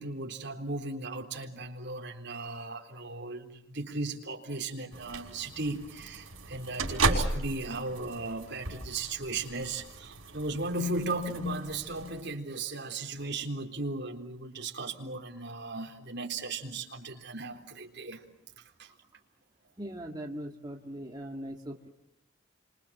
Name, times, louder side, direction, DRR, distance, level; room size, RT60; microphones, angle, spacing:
voice 1, 0.0-18.2 18.6-18.9, right 2 dB, 50° right, 3.9 m, -36 dB
sound 1, 4.9-12.2, right 3 dB, 80° right, 5.4 m, -35 dB
voice 2, 19.7-21.9, equal, 20° right, 2.0 m, -40 dB
30.0 x 26.5 x 7.5 m
head